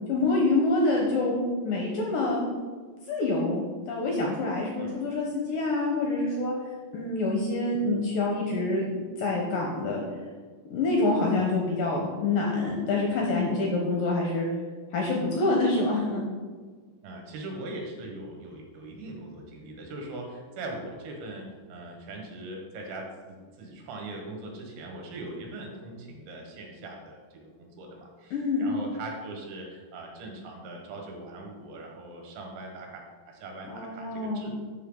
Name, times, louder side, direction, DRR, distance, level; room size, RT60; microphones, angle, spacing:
voice 1, 0.1-1.4 1.6-2.4 3.1-6.5 6.9-8.8 9.2-10.0 10.7-14.5 14.9-16.3 28.3-28.7 33.7-34.4, left 2 dB, 70° left, -1 dB, 2.2 m, -26 dB
voice 2, 17.0-34.5, right 2 dB, 80° right, 1 dB, 3.8 m, -41 dB
12.5 x 5.6 x 3.9 m, 1.5 s
omnidirectional pair, 5.2 m